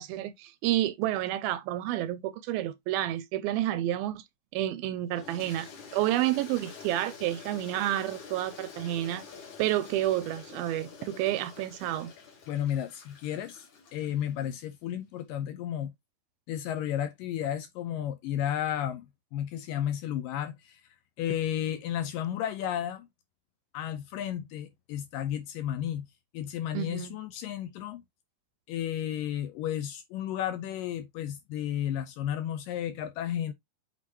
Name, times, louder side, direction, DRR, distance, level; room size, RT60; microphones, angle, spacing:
voice 1, 0.0-4.2 4.5-9.2 9.6-12.1 26.7-27.2, right 14 dB, 80° right, 2.2 m, -30 dB
Toilet flush, 5.1-14.5, left 5 dB, 55° left, 3.5 m, -47 dB
voice 2, 12.5-13.7 13.9-15.9 16.5-20.8 21.2-23.1 23.7-26.1 26.3-28.0 28.7-33.5, left 10 dB, 80° left, 2.1 m, -33 dB
8.3 x 4.7 x 2.9 m
omnidirectional pair, 4.5 m